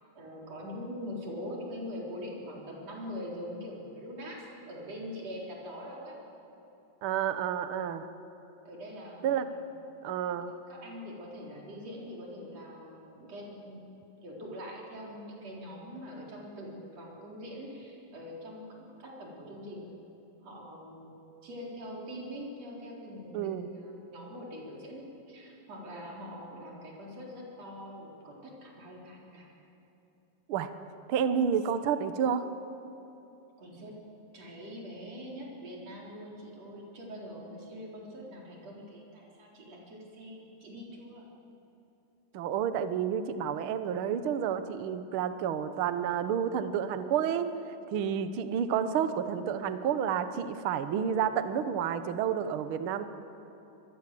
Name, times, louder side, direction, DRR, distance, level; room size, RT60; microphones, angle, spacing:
voice 1, 0.2-6.2 8.6-9.6 10.7-13.8 14.2-18.7 19.0-19.9 20.4-21.1 21.4-29.5 33.6-34.1 34.3-41.3, equal, 50° right, -3 dB, 5.3 m, -43 dB
voice 2, 7.0-8.1 9.2-9.5 10.0-10.5 23.3-23.7 30.5-30.7 31.1-32.5 42.3-53.0, right 8 dB, 70° right, 10 dB, 1.2 m, -30 dB
26.0 x 21.0 x 7.8 m, 3.0 s
omnidirectional pair, 3.8 m